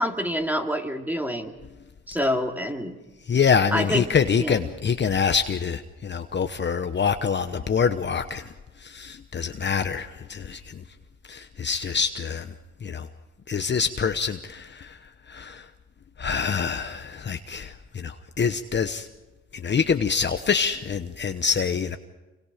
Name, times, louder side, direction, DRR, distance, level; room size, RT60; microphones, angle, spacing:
voice 1, 0.0-1.5 2.1-3.0 3.7-4.0 4.4-4.6, equal, 5° right, 4 dB, 2.4 m, -26 dB
voice 2, 3.3-8.5 8.8-10.8 11.3-12.5 12.8-13.1 13.5-15.7 16.2-19.1 19.5-22.0, left 6 dB, 35° left, 8 dB, 1.0 m, -26 dB
27.5 x 24.5 x 5.1 m, 1.1 s
cardioid pair, 90°, 30 cm